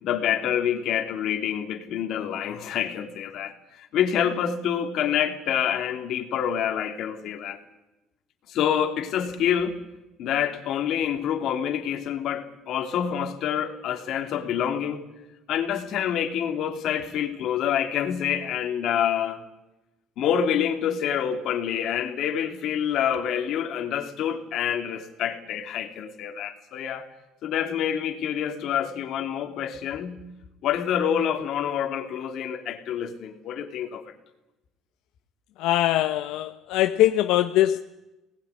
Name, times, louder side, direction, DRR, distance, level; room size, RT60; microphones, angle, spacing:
voice 1, 0.0-7.6 8.5-9.8 10.2-15.0 15.5-19.4 20.2-27.1 27.4-30.2 30.6-34.0, left 9 dB, 55° left, 2.7 m, -27 dB
voice 2, 35.6-37.8, left 13 dB, 85° left, 0.9 m, -22 dB
23.5 x 19.5 x 9.7 m
cardioid pair, 170°, 0 cm